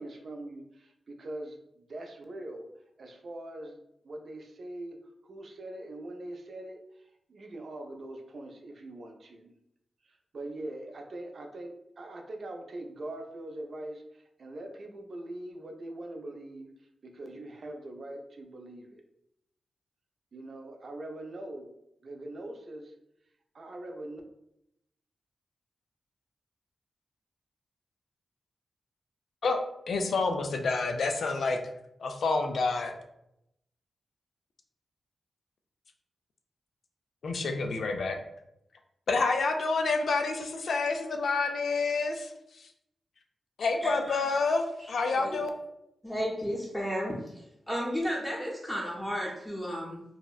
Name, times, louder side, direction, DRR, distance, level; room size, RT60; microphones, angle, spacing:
voice 1, 0.0-2.7 3.0-5.0 5.2-9.5 10.0-16.7 17.0-19.0 20.3-21.7 22.0-22.9 23.5-24.2, right 1 dB, 65° right, 3 dB, 0.4 m, -42 dB
voice 2, 29.9-31.7 32.0-32.9 37.2-38.2 39.1-42.7 43.6-45.5, left 3 dB, 75° left, 4 dB, 0.3 m, -28 dB
voice 3, 43.8-44.2 45.0-45.4 46.0-47.2 47.7-50.0, equal, 5° left, -5 dB, 0.6 m, -33 dB
2.7 x 2.1 x 2.3 m, 0.81 s
cardioid pair, 60°, 0 cm